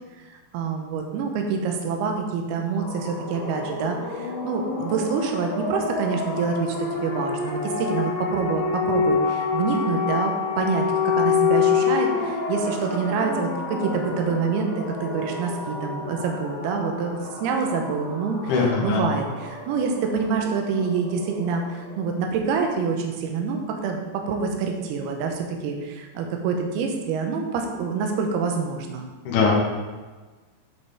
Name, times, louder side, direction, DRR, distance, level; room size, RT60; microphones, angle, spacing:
voice 1, 0.3-29.0, right 5 dB, 75° right, 3 dB, 2.6 m, -26 dB
sound 1, 2.8-22.2, left 5 dB, 85° left, 3.2 m, -28 dB
voice 2, 18.5-19.0 29.3-29.5, left 4 dB, 65° left, -4 dB, 2.1 m, -20 dB
9.6 x 5.4 x 3.5 m, 1.3 s
omnidirectional pair, 5.1 m